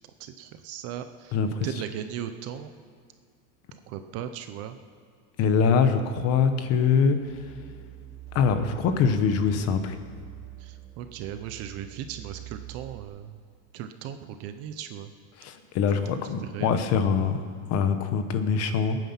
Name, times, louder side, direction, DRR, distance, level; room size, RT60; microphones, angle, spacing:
voice 1, 0.2-2.7 3.7-4.8 10.6-13.4 13.7-15.1 16.2-16.7, right 10 dB, 35° right, 9 dB, 0.5 m, -37 dB
voice 2, 1.3-1.7 5.4-7.2 8.3-10.0 15.4-17.4 17.7-19.0, left 6 dB, 35° left, 9 dB, 0.9 m, -23 dB
sound 1, 7.1-13.0, right 16 dB, 15° right, 2.6 m, -45 dB
20.5 x 9.2 x 5.7 m, 2.2 s
cardioid pair, 170°, 44 cm